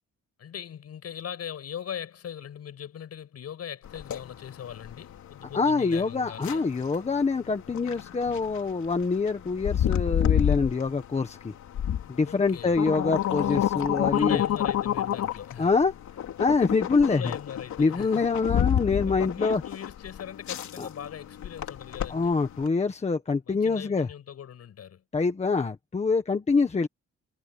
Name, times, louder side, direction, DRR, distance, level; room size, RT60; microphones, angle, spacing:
voice 1, 0.4-6.6 12.2-12.7 14.0-15.7 17.0-18.2 19.0-22.4 23.4-25.0, left 9 dB, 60° left, 6.8 m, -40 dB
sound 1, 3.8-22.7, left 10 dB, 75° left, 3.5 m, -29 dB
voice 2, 5.5-11.5 12.1-14.4 15.6-15.9 16.4-17.3 17.8-19.6 20.8-20.9 22.1-24.1 25.1-26.9, left 4 dB, 20° left, 1.5 m, -25 dB
wide cardioid pair, 175°, 29 cm